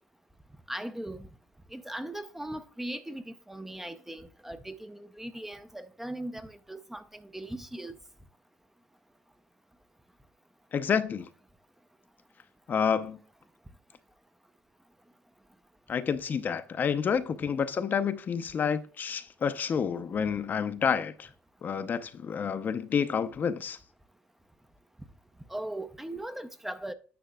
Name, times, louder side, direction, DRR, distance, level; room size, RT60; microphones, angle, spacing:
voice 1, 0.7-1.3 1.7-7.9 25.5-26.9, right 1 dB, 5° right, 0.5 m, -39 dB
voice 2, 10.7-11.3 12.7-13.2 15.9-21.3 21.6-23.8, left 7 dB, 40° left, 0.6 m, -29 dB
10.5 x 6.6 x 2.3 m
cardioid pair, 110°, 5 cm